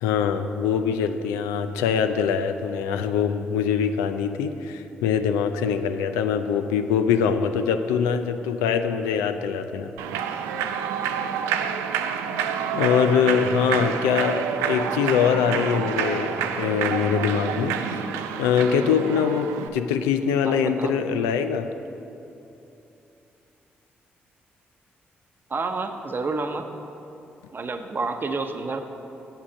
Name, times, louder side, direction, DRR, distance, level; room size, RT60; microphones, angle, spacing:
voice 1, 0.0-9.9 12.7-18.1 18.4-21.7, left 7 dB, 90° left, 9 dB, 0.4 m, -23 dB
Human voice / Clapping / Cheering, 10.0-19.7, right 8 dB, 85° right, 0.4 m, -28 dB
voice 2, 20.4-21.0 25.5-26.7 27.5-28.8, right 3 dB, 45° right, 6 dB, 0.8 m, -29 dB
7.3 x 7.2 x 6.2 m, 2.9 s
hypercardioid pair, 45°, 5 cm